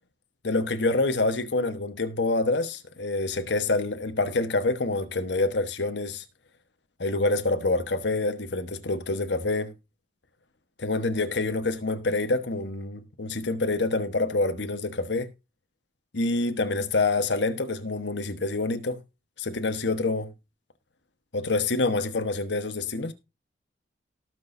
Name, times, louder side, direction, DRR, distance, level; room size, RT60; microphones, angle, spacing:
voice 1, 0.4-6.2 7.0-9.7 10.8-15.3 16.1-19.0 19.4-20.3 21.3-23.1, left 2 dB, 75° left, 1.2 m, -26 dB
18.5 x 6.3 x 2.6 m
head